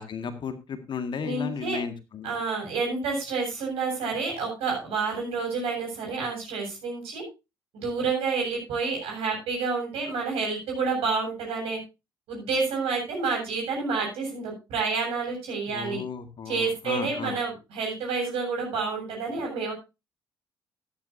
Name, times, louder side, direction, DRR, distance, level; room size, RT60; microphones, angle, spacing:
voice 1, 0.0-2.3 15.7-17.4, left 6 dB, 45° left, 8 dB, 1.9 m, -34 dB
voice 2, 1.2-1.8 2.2-7.2 7.7-11.8 12.3-16.0 16.5-19.7, right 4 dB, 60° right, 0 dB, 7.7 m, -29 dB
14.0 x 12.5 x 2.7 m, 0.27 s
figure-of-eight pair, 45°, 11 cm